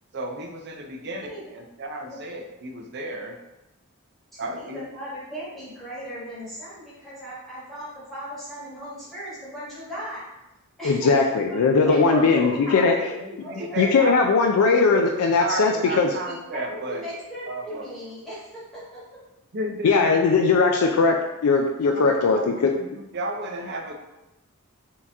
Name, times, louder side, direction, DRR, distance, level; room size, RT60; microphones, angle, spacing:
voice 1, 0.1-3.4 4.4-4.8 12.7-14.4 14.9-17.0 17.5-17.9 19.5-21.0 21.9-23.9, right 1 dB, 50° right, 4 dB, 0.5 m, -33 dB
voice 2, 4.3-10.2 10.8-11.6 11.8-13.9 16.1-18.8, right 1 dB, ahead, -10 dB, 1.4 m, -37 dB
voice 3, 10.8-12.9 13.8-16.1 19.8-21.2 21.4-22.7, left 4 dB, 80° left, 2 dB, 0.4 m, -19 dB
4.5 x 2.8 x 3.4 m, 0.96 s
head